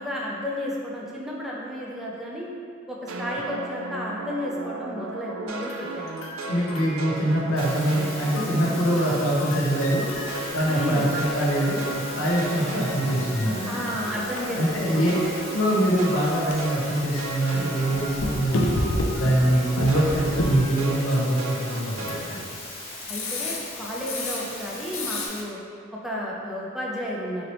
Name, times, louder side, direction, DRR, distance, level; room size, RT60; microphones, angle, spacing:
voice 1, 0.0-2.5 2.9-6.4 10.7-11.2 13.7-15.3 23.1-25.6 26.0-27.5, equal, ahead, -5 dB, 0.4 m, -32 dB
sound 1, 3.1-9.4 9.7-19.0 19.3-22.3, right 2 dB, 75° right, 0.4 m, -35 dB
sound 2, 5.5-7.5 8.4-22.4 23.0-24.7 24.9-25.3, left 1 dB, 75° left, 0.5 m, -33 dB
voice 2, 6.5-10.1 10.5-13.8 14.6-15.1 15.5-18.7 19.1-22.0 22.3-22.4, right 1 dB, 90° left, -5 dB, 0.9 m, -24 dB
sound 3, 7.6-25.4, left 2 dB, 30° left, 0.7 m, -39 dB
3.8 x 3.2 x 3.0 m, 2.2 s
head